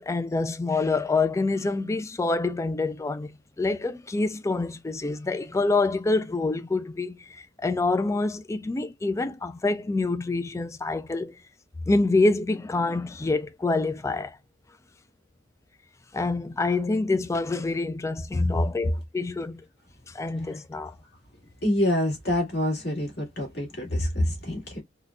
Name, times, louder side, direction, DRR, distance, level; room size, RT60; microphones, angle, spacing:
voice 1, 0.0-3.3 3.6-11.4 11.9-14.4 16.1-19.6 20.1-20.9, left 3 dB, 15° left, 0.3 m, -26 dB
voice 2, 21.6-24.8, left 1 dB, 55° left, 1.8 m, -26 dB
3.7 x 2.2 x 2.3 m
head